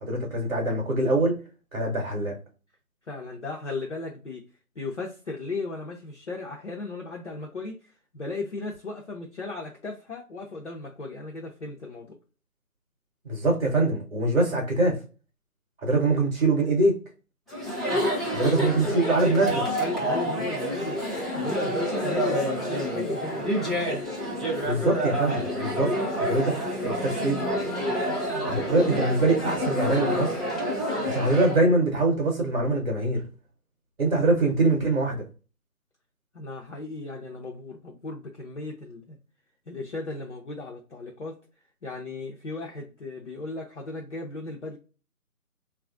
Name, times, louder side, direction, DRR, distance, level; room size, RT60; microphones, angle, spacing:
voice 1, 0.0-1.4 1.7-2.3 13.2-14.9 15.8-17.0 18.3-19.6 24.6-27.4 28.5-30.3 31.1-33.2 34.0-35.2, right 2 dB, 40° right, 0.7 m, -24 dB
voice 2, 3.1-4.4 4.8-12.1 18.6-19.1 19.8-21.0 21.3-23.5 36.3-39.2 39.7-41.4 41.8-44.8, left 3 dB, 50° left, 0.5 m, -36 dB
Chatter, 17.5-31.6, equal, ahead, 0.4 m, -28 dB
2.9 x 2.3 x 2.3 m
figure-of-eight pair, 160°, 46 cm